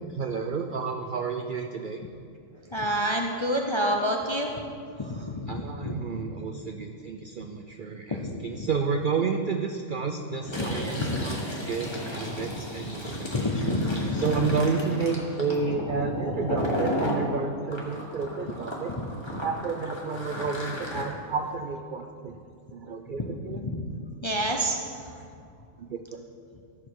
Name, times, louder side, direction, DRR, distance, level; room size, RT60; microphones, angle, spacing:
voice 1, 0.1-2.0 5.5-13.6 14.1-18.9 19.3-22.4 22.7-23.6 25.8-26.2, right 5 dB, 70° right, 5 dB, 0.4 m, -31 dB
voice 2, 2.7-4.6 5.0-5.5 5.8-5.9 8.1-8.3 8.6-8.7 10.6-10.8 11.1-11.2 13.3-14.4 19.0-19.1 23.2-23.3 23.6-23.8 24.2-25.1, equal, 35° left, 1 dB, 0.5 m, -28 dB
Fill (with liquid), 10.4-17.2 17.7-21.0, left 1 dB, 20° left, 1.6 m, -33 dB
14.0 x 6.5 x 4.6 m, 2.4 s
omnidirectional pair, 1.5 m